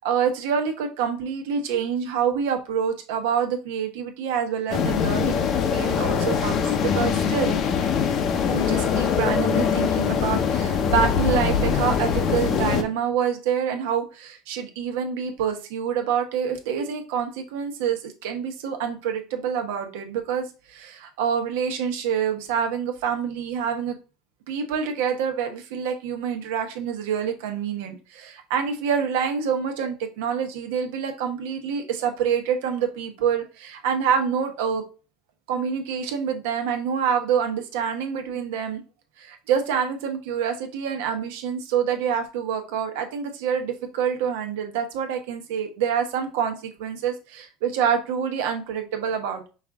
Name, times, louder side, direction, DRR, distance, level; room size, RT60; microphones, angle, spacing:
voice 1, 0.0-5.5 5.7-7.6 8.5-24.0 24.5-34.8 35.5-38.8 39.2-49.5, right 7 dB, 90° right, 5 dB, 1.0 m, -26 dB
sound 1, 4.7-12.8, left 7 dB, 45° left, 0.7 m, -23 dB
5.4 x 2.5 x 3.5 m, 0.33 s
cardioid pair, 130°, 0 cm